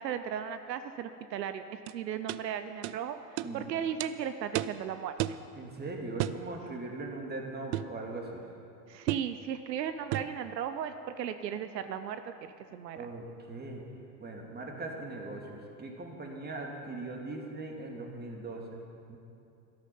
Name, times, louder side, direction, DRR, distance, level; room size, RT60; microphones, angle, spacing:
voice 1, 0.0-5.1 8.9-13.1, right 9 dB, 80° right, 10 dB, 0.8 m, -36 dB
sound 1, 1.9-2.0 2.3-2.4 2.8-3.0 3.4-3.5 4.0-4.1 4.6-4.8 5.2-5.4 6.2-6.4 7.7-8.0 9.1-9.3 10.1-10.4, right 14 dB, 45° right, 0.5 m, -33 dB
voice 2, 5.6-8.4 12.9-13.8 14.2-18.6 19.1-19.2, right 2 dB, 20° right, 1 dB, 2.5 m, -40 dB
13.5 x 12.5 x 5.5 m, 2.6 s
hypercardioid pair, 90°, 49 cm